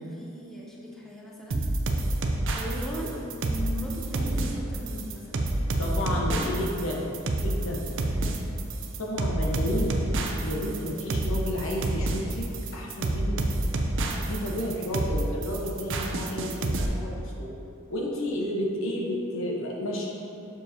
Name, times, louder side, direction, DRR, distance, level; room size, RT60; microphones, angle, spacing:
voice 1, 0.0-1.7 2.5-3.2 3.4-5.5 6.0-6.6 7.8-8.4 14.1-14.3, equal, ahead, -4 dB, 0.6 m, -39 dB
sound 1, 1.5-16.9, right 2 dB, 60° right, 0.6 m, -28 dB
voice 2, 5.8-7.9 9.0-9.9 10.4-12.4 12.7-13.5 14.2-17.5 17.9-20.1, left 1 dB, 65° left, -3 dB, 1.1 m, -31 dB
7.1 x 6.6 x 2.8 m, 2.7 s
head